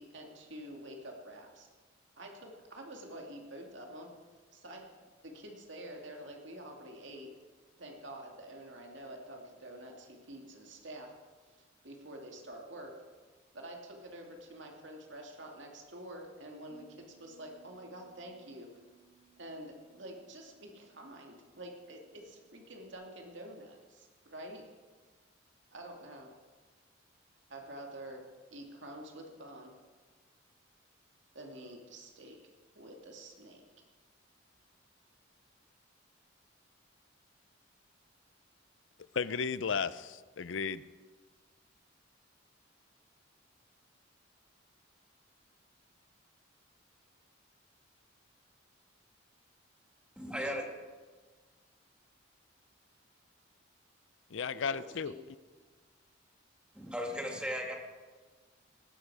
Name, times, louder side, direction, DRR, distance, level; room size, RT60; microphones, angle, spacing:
voice 1, 0.0-1.7 2.2-4.1 4.5-4.8 5.2-7.3 7.8-11.1 11.5-12.9 13.5-18.7 19.4-24.6 25.7-26.3 27.5-28.2 28.5-29.7 31.3-32.4 32.7-33.6 50.4-50.6 54.5-55.2, right 1 dB, 65° right, 2 dB, 2.4 m, -48 dB
Bass guitar, 16.7-22.9, right 9 dB, 25° left, 4.1 m, -66 dB
voice 2, 39.1-40.8 54.3-55.1, left 5 dB, 70° left, 16 dB, 0.6 m, -34 dB
voice 3, 50.2-50.6 56.7-57.8, equal, 5° right, 1 dB, 2.0 m, -36 dB
19.0 x 14.0 x 4.8 m, 1.4 s
head